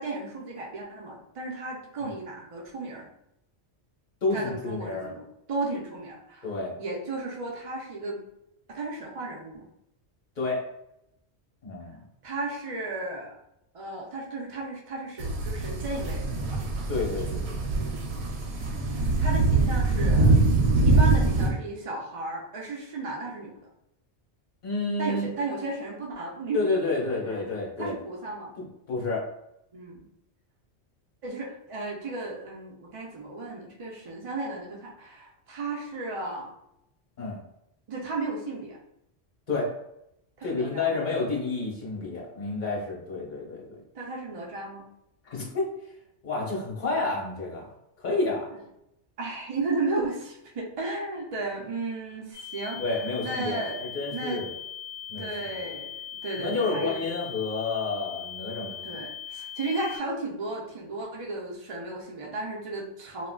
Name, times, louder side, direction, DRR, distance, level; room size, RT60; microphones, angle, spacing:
voice 1, 0.0-3.1 4.3-8.2 8.7-9.7 12.2-13.4 13.7-16.6 17.7-18.1 18.9-20.3 20.8-23.5 25.0-26.6 27.1-27.5 27.8-28.5 29.7-30.1 31.2-36.5 37.9-38.8 40.4-41.0 43.9-44.8 49.2-53.8 54.1-54.5 55.2-57.0 58.8-63.3, right 2 dB, 45° right, -2 dB, 0.4 m, -34 dB
voice 2, 4.2-5.1 6.4-6.7 10.4-10.6 11.6-12.0 16.9-17.6 24.6-25.3 26.5-27.9 28.6-29.2 37.2-37.4 39.5-39.7 40.4-43.8 45.2-45.7 46.2-47.7 48.0-48.5 52.8-54.5 55.1-55.7 56.4-59.0, left 3 dB, 45° left, -3 dB, 0.9 m, -30 dB
sound 1, 15.2-21.5, right 2 dB, 75° right, 0.8 m, -23 dB
sound 2, 52.3-60.0, left 9 dB, 20° left, 1.1 m, -40 dB
3.5 x 2.2 x 2.2 m, 0.80 s
omnidirectional pair, 1.1 m